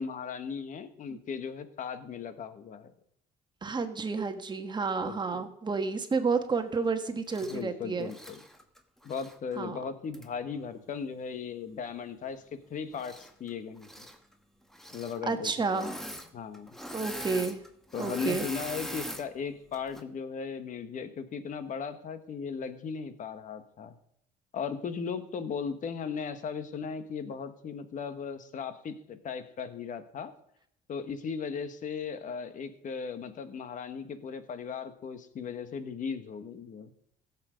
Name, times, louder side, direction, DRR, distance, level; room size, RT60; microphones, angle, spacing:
voice 1, 0.0-2.9 5.1-5.4 7.4-8.4 9.0-14.0 14.9-15.9 16.3-16.7 17.9-23.9 24.5-30.3 30.9-36.9, left 6 dB, 50° left, 10 dB, 1.5 m, -37 dB
voice 2, 3.6-8.1 9.6-9.8 15.3-16.0 16.9-17.6 18.0-18.5, right 4 dB, 25° right, 7 dB, 1.4 m, -30 dB
Engine / Mechanisms, 7.3-7.6 8.0-9.4 10.1-10.2 12.9-13.5 13.8-14.2 14.7-15.2 15.7-16.3 16.5-19.2 19.7-20.0, equal, ahead, 1.3 m, -41 dB
16.0 x 7.4 x 5.2 m, 0.70 s
cardioid pair, 110°, 17 cm